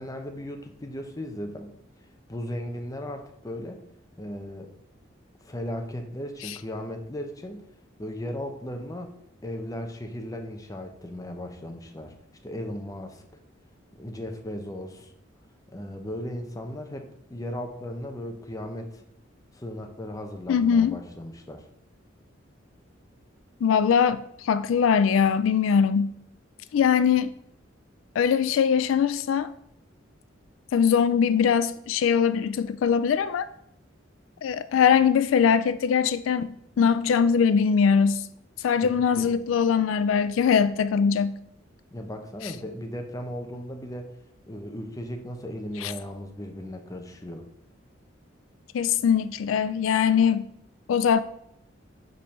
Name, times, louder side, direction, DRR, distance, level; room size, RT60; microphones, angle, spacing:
voice 1, 0.0-1.7 2.3-3.8 4.2-4.7 5.4-7.6 8.0-9.1 9.4-12.1 12.4-13.2 13.9-15.1 15.7-19.0 19.5-21.6 38.8-39.3 41.9-44.1 44.5-47.4, left 1 dB, 20° left, 0.7 m, -36 dB
voice 2, 20.5-21.0 23.6-26.1 26.7-27.3 28.2-29.5 30.7-33.5 34.4-38.2 38.6-41.4 45.8-45.9 48.7-50.5 50.9-51.2, left 7 dB, 85° left, 0.3 m, -22 dB
5.3 x 4.4 x 5.3 m
head